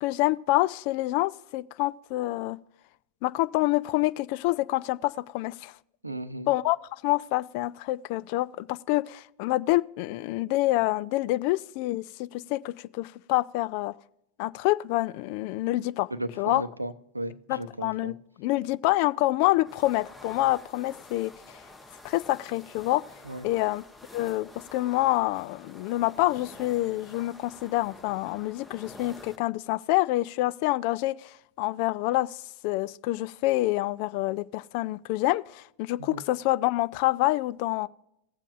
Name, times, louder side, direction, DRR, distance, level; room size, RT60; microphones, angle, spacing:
voice 1, 0.0-2.6 3.2-5.7 6.5-6.8 7.0-13.9 14.4-16.1 16.4-16.6 17.5-18.1 18.4-21.3 22.0-23.0 23.4-23.8 24.1-32.4 32.6-37.9, left 18 dB, 45° left, 0.3 m, -27 dB
voice 2, 6.0-6.5 16.1-18.1 23.2-23.5 36.0-36.2, right 1 dB, 85° right, 0.6 m, -35 dB
sound 1, 19.6-29.4, left 2 dB, 10° left, 0.9 m, -49 dB
19.0 x 7.5 x 2.4 m
figure-of-eight pair, 90°, 0 cm